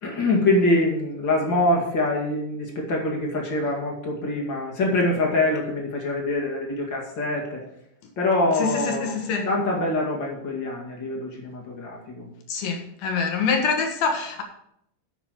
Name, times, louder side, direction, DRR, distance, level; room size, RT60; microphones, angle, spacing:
voice 1, 0.0-7.6 8.2-9.2 9.4-12.3, left 2 dB, 40° left, 1.9 m, -24 dB
voice 2, 8.6-9.5 12.5-14.4, left 5 dB, 65° left, 3.1 m, -25 dB
10.0 x 6.3 x 6.4 m
omnidirectional pair, 5.1 m